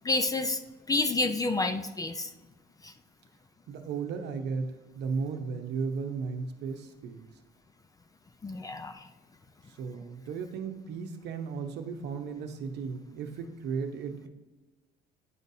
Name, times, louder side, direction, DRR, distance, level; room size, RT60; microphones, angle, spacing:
voice 1, 0.0-0.6 0.9-2.3 2.8-2.9 8.4-9.1, left 2 dB, 20° left, 9 dB, 0.3 m, -29 dB
voice 2, 3.7-7.3 9.8-14.3, right 5 dB, 65° right, 5 dB, 0.8 m, -35 dB
10.0 x 3.9 x 2.7 m, 1.2 s
cardioid pair, 125°, 19 cm